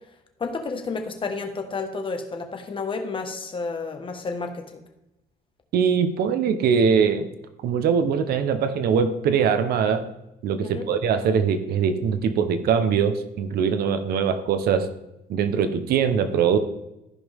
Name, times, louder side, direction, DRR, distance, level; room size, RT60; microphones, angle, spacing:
voice 1, 0.4-4.6 10.6-10.9, left 4 dB, 30° left, 5 dB, 1.5 m, -31 dB
voice 2, 5.7-7.3 7.6-10.1 10.4-14.9 15.3-16.6, right 6 dB, 65° right, 10 dB, 0.9 m, -22 dB
14.5 x 5.1 x 3.5 m, 0.90 s
cardioid pair, 110°, 17 cm